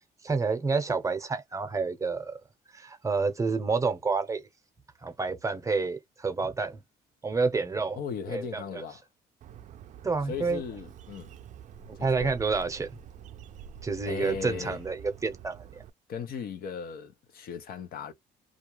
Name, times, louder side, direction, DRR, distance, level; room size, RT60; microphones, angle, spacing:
voice 1, 0.2-2.4 2.7-4.5 5.0-6.8 7.2-8.0 8.3-8.8 10.0-10.6 12.0-12.9 13.8-15.8, right 4 dB, 20° right, 0.8 m, -29 dB
voice 2, 8.0-9.0 10.3-11.3 12.0-12.3 14.0-14.8 16.1-18.1, left 6 dB, 60° left, 0.7 m, -37 dB
Bird, 9.4-15.9, right 8 dB, 45° right, 0.4 m, -47 dB
2.4 x 2.3 x 3.0 m
cardioid pair, 110°, 17 cm